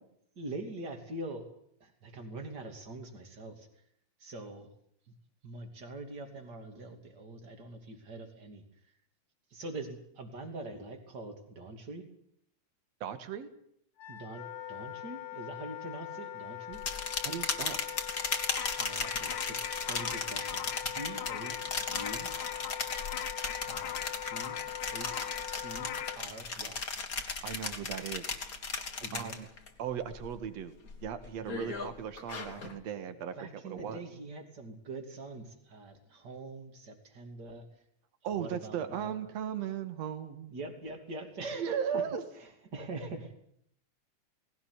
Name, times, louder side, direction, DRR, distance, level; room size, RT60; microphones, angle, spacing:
voice 1, 0.3-1.5 1.8-3.7 4.2-4.7 5.4-8.6 9.5-12.1 14.1-16.8 18.8-19.6 19.9-20.7 20.9-22.3 23.6-24.6 24.9-26.8 29.0-29.4 31.5-31.7 33.4-37.6 38.2-39.2 40.5-42.1 42.3-43.4, right 2 dB, 35° right, 5 dB, 3.3 m, -44 dB
voice 2, 13.0-13.5 17.2-17.8 27.4-28.4 29.1-29.5 29.8-33.4 33.6-34.0 38.2-40.5 41.6-42.2, right 8 dB, 65° right, 10 dB, 2.8 m, -37 dB
Wind instrument woodwind instrument, 14.0-26.2, left 11 dB, 65° left, 2.3 m, -42 dB
sound 1, 16.7-29.7 30.0-30.5 30.9-32.8, left 4 dB, 35° left, 2.0 m, -36 dB
sound 2, 18.6-26.2, left 10 dB, 85° left, 2.7 m, -42 dB
19.0 x 17.5 x 9.7 m, 0.70 s
omnidirectional pair, 3.3 m